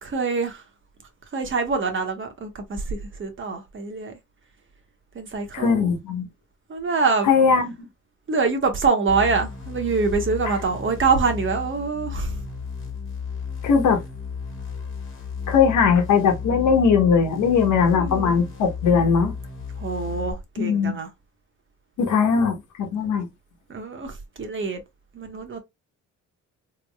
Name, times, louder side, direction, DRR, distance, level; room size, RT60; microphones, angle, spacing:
voice 1, 0.0-0.7 1.3-4.2 5.1-5.9 6.7-7.3 8.3-12.4 17.9-18.4 19.8-21.1 23.7-24.8 25.1-25.6, right 4 dB, 40° right, 1.2 m, -25 dB
voice 2, 5.5-6.3 7.3-7.6 13.6-14.0 15.5-19.3 20.6-20.9 22.0-23.3, left 6 dB, 75° left, 1.2 m, -19 dB
sound 1, 9.1-20.3, left 6 dB, 40° left, 1.4 m, -33 dB
3.6 x 3.2 x 2.3 m
cardioid pair, 90°, 30 cm